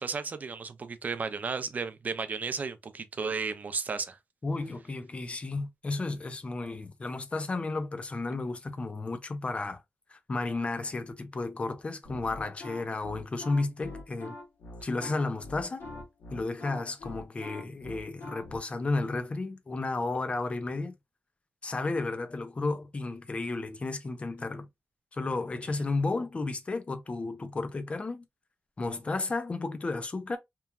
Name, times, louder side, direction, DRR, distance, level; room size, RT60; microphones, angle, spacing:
voice 1, 0.0-4.2, right 5 dB, 45° right, 0.5 m, -34 dB
voice 2, 4.4-9.8 10.1-14.3 14.8-15.8 16.3-20.9 21.6-24.7 25.1-28.2 28.8-30.4, left 3 dB, 30° left, 0.5 m, -33 dB
sound 1, 12.0-18.6, left 2 dB, 85° left, 1.2 m, -44 dB
3.0 x 2.2 x 2.3 m
wide cardioid pair, 115°, 4 cm